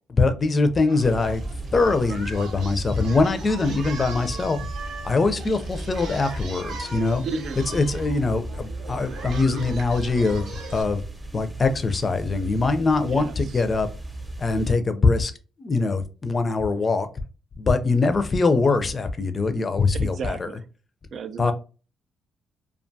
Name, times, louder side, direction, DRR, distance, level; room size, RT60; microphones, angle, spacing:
voice 1, 0.1-1.4 1.7-4.6 5.0-7.2 7.7-11.0 11.3-13.9 14.4-15.3 15.6-17.1 17.6-20.5 21.4-21.5, left 3 dB, 35° left, 0.4 m, -22 dB
Singing, 0.9-10.8, right 4 dB, 80° right, 0.8 m, -40 dB
sound 1, 1.0-14.7, right 1 dB, 15° right, 0.7 m, -36 dB
voice 2, 7.2-7.6 13.0-13.6 20.0-20.6 21.1-21.5, right 4 dB, 60° right, 0.4 m, -33 dB
2.4 x 2.3 x 2.6 m
cardioid pair, 90°, 0 cm